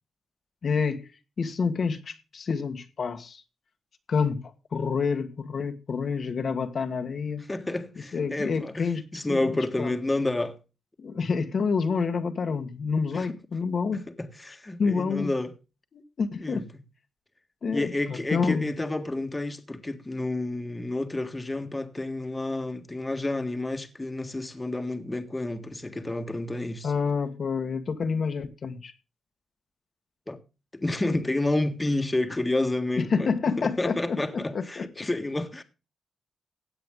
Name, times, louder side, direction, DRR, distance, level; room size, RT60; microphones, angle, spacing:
voice 1, 0.6-1.1 1.4-3.4 4.1-7.4 8.1-9.0 9.3-9.9 11.0-14.0 14.8-15.3 15.9-16.7 17.6-18.7 26.8-28.9 33.0-34.9, left 5 dB, 50° left, 1.6 m, -28 dB
voice 2, 7.5-10.6 13.1-13.4 13.9-15.5 16.4-16.6 17.7-26.9 30.3-30.4 30.7-33.3 33.6-35.6, left 2 dB, 15° left, 1.7 m, -30 dB
16.5 x 9.0 x 3.7 m
cardioid pair, 110°, 0 cm